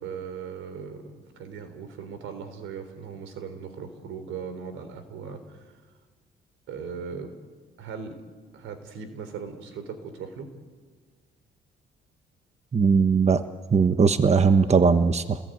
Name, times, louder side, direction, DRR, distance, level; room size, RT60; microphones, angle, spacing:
voice 1, 0.0-5.7 6.7-7.3 7.8-8.2 8.5-10.5, right 6 dB, 85° right, 10 dB, 3.9 m, -38 dB
voice 2, 12.7-13.4 13.7-15.4, right 5 dB, 35° right, 9 dB, 1.2 m, -19 dB
29.5 x 20.0 x 9.3 m, 1.5 s
cardioid pair, 90°, 20 cm